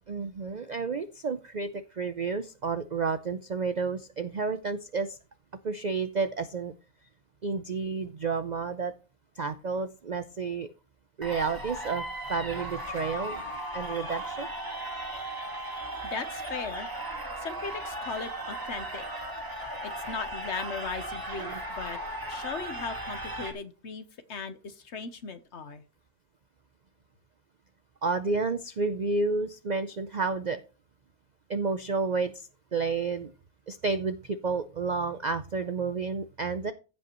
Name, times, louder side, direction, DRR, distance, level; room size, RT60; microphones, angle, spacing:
voice 1, 0.1-1.7 2.0-5.2 5.6-6.7 7.4-8.9 9.4-10.7 11.2-12.0 12.3-13.4 13.7-14.5 21.4-21.6 28.0-30.6 31.5-32.4 32.7-33.3 33.7-36.7, right 4 dB, 55° right, 11 dB, 0.5 m, -30 dB
sound 1, 11.2-23.5, right 1 dB, 15° right, 1.7 m, -36 dB
voice 2, 16.0-16.9 17.4-19.0 19.8-22.0 22.3-25.8, left 5 dB, 55° left, 11 dB, 1.1 m, -38 dB
15.5 x 5.4 x 3.0 m, 0.33 s
omnidirectional pair, 1.5 m